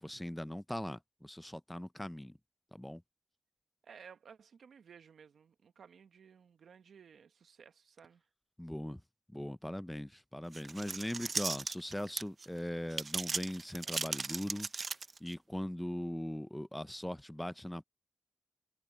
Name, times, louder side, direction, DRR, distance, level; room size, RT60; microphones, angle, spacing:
voice 1, 0.0-2.4 2.7-3.0 8.6-9.0 9.3-14.7 15.2-17.8, left 1 dB, 10° left, 0.6 m, -40 dB
voice 2, 3.8-8.2, right 7 dB, 80° right, 1.5 m, -57 dB
sound 1, 10.5-12.5 12.9-15.3, right 4 dB, 50° right, 0.7 m, -37 dB
cardioid pair, 55°, 0 cm